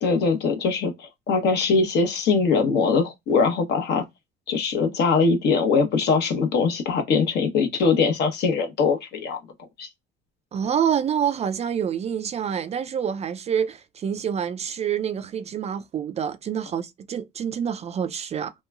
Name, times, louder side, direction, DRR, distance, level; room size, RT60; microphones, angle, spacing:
voice 1, 0.0-4.0 4.5-9.4 9.8-9.9, left 4 dB, 60° left, 0.9 m, -22 dB
voice 2, 10.5-18.5, right 8 dB, 35° right, 0.3 m, -27 dB
2.9 x 2.3 x 2.2 m
supercardioid pair, 80°, 20 cm